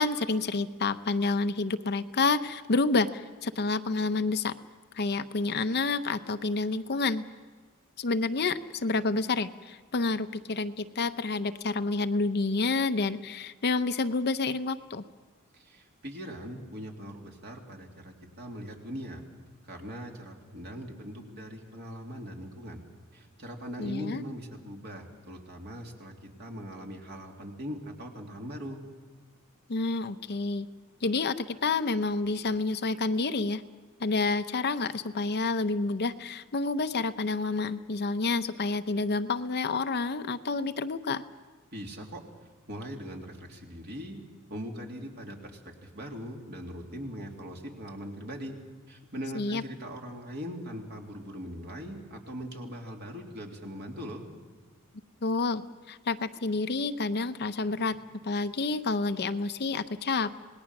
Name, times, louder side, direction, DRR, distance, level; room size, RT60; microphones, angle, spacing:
voice 1, 0.0-4.5 4.9-7.2 8.0-15.0 23.8-24.2 29.7-30.7 31.0-33.6 34.0-41.2 49.3-49.6 55.2-55.6 55.9-57.9 58.2-60.3, left 3 dB, 50° left, 10 dB, 0.7 m, -29 dB
voice 2, 15.5-19.2 19.7-22.8 23.1-26.1 26.4-28.8 41.7-42.2 42.7-44.2 44.5-48.5 48.9-54.2, equal, 50° right, 1 dB, 3.0 m, -40 dB
27.0 x 19.5 x 6.0 m, 1.4 s
head